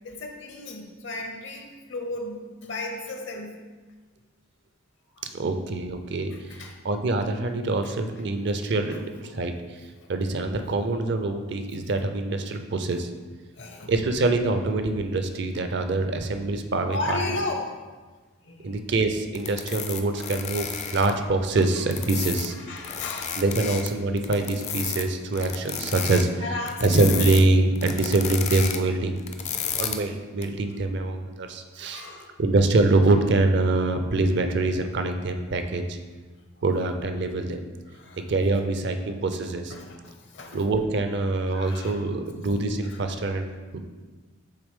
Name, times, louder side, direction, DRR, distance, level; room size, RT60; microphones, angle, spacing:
voice 1, 0.0-3.6 5.2-5.3 6.3-6.8 8.9-9.0 9.3-9.4 13.6-13.9 16.0-16.1 16.9-17.8 18.4-18.8 22.5-23.6 26.4-27.2 31.9-32.4 37.9-38.2 39.7-40.7 41.5-42.0 42.8-43.0, left 2 dB, 65° left, 2 dB, 0.9 m, -35 dB
voice 2, 5.3-6.3 6.8-8.9 9.2-9.5 10.1-13.1 13.9-17.2 18.6-22.5 23.4-26.3 26.8-29.2 29.7-32.1 32.4-36.0 36.6-37.6 38.3-39.7 40.5-43.4 43.7-43.8, right 2 dB, 60° right, 7 dB, 0.5 m, -24 dB
sound 1, 19.3-21.1 21.6-22.5 22.8-23.9 24.2-25.0 25.3-26.2 26.7-27.4 27.8-28.8 29.2-30.0 30.4-30.5, left 7 dB, 35° left, 0.4 m, -32 dB
8.2 x 3.3 x 3.6 m, 1.3 s
head